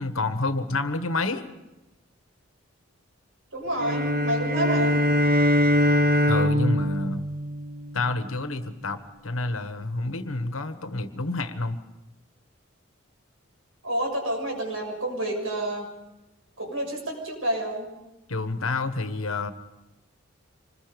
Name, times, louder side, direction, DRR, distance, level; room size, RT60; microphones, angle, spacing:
voice 1, 0.0-1.4 6.3-7.2 7.9-11.8 18.3-19.5, left 2 dB, 85° left, 10 dB, 1.4 m, -28 dB
voice 2, 3.5-5.0 13.8-15.9 16.6-17.9, right 1 dB, 80° right, 2 dB, 6.6 m, -29 dB
sound 1, 3.8-8.2, equal, 45° right, 1.2 m, -23 dB
26.0 x 21.0 x 5.3 m, 1.0 s
head